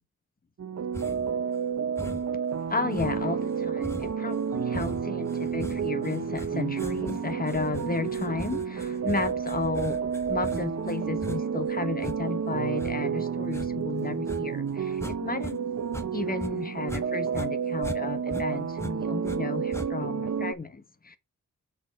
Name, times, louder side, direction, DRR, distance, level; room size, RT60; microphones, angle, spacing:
sound 1, 0.6-20.5, right 6 dB, 55° right, 0.8 m, -30 dB
sound 2, 0.9-1.4 2.0-2.4 2.9-15.5 15.8-17.1 17.3-19.4 19.7-20.2, left 1 dB, 10° left, 1.0 m, -40 dB
voice 1, 2.7-15.7 16.1-21.2, left 4 dB, 30° left, 1.1 m, -33 dB
7.1 x 6.2 x 4.3 m
wide cardioid pair, 170°, 31 cm